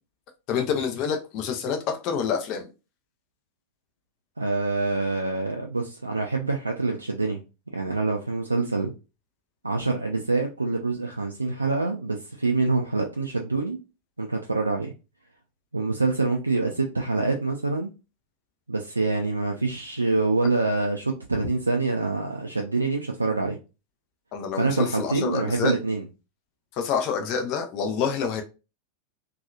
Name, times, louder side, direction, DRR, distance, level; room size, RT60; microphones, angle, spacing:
voice 1, 0.5-2.7 24.3-25.7 26.7-28.4, left 6 dB, 40° left, 0.5 m, -27 dB
voice 2, 4.4-7.4 7.7-8.9 9.6-13.8 14.2-14.9 15.7-17.9 18.7-23.6 24.6-26.0, right 3 dB, 80° right, 0.3 m, -26 dB
2.7 x 2.3 x 2.3 m
figure-of-eight pair, 90°, 0 cm